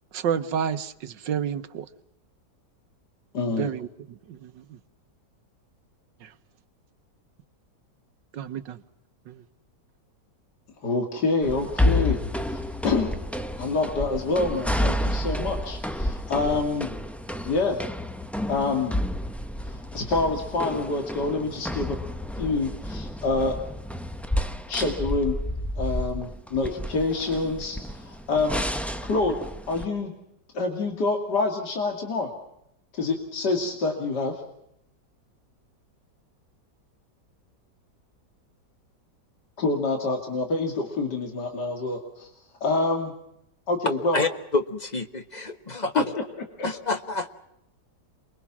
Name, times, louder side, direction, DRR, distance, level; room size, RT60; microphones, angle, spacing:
voice 1, 0.1-1.8 3.6-4.6 6.2-6.3 8.3-8.8 9.3-9.4, right 8 dB, 90° right, 12 dB, 1.7 m, -30 dB
voice 2, 3.3-3.7 10.8-12.2 12.4-13.1 13.6-16.9 17.4-17.8 18.5-18.9 19.7-22.0 22.4-23.5 24.7-25.4 25.8-28.6 29.1-29.4 29.7-30.1 30.5-32.3 32.9-34.4 39.6-42.3 42.6-43.1 43.7-44.2 45.9-46.0 46.6-46.7, left 3 dB, 70° left, 2 dB, 3.1 m, -26 dB
sound 1, 11.4-29.9, left 1 dB, ahead, 0.5 m, -30 dB
voice 3, 44.1-46.0 46.6-47.4, left 3 dB, 25° left, 7 dB, 1.3 m, -28 dB
28.0 x 22.0 x 6.1 m, 0.81 s
omnidirectional pair, 1.9 m